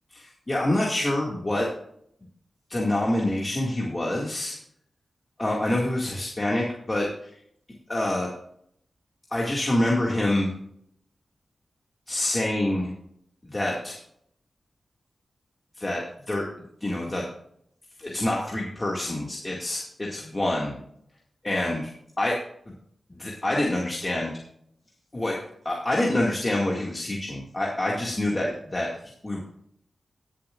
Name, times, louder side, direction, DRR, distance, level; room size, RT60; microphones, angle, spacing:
voice 1, 0.1-1.7 2.7-4.5 5.4-7.3 7.9-8.3 9.3-10.5 12.1-12.9 13.4-14.0 15.8-16.0 16.3-16.5 16.8-17.2 18.0-20.8 21.4-21.9 22.2-22.4 23.2-24.3 25.1-25.4 25.6-29.4, left 1 dB, 25° left, -3 dB, 2.1 m, -26 dB
19.0 x 7.3 x 2.5 m, 0.69 s
wide cardioid pair, 90°, 0 cm